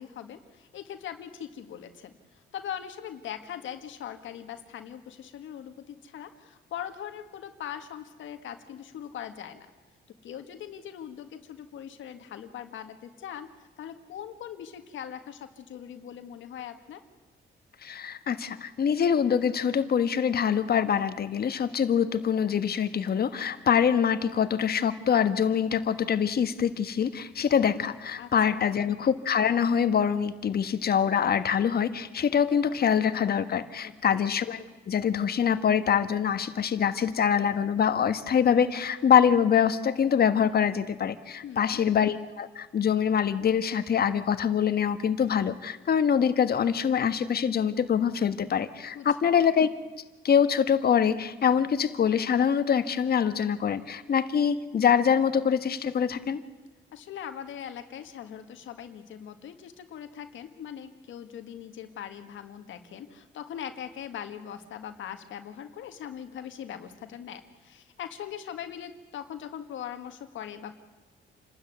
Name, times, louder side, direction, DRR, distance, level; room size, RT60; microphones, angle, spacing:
voice 1, 0.0-9.7 10.1-13.5 13.8-17.0 28.2-28.8 33.8-34.3 41.4-41.8 48.9-49.1 56.9-70.8, left 9 dB, 75° left, 7 dB, 1.7 m, -41 dB
voice 2, 17.8-49.7 50.2-56.4, left 7 dB, 50° left, 11 dB, 1.4 m, -24 dB
28.0 x 13.0 x 9.4 m, 1.3 s
cardioid pair, 90°, 20 cm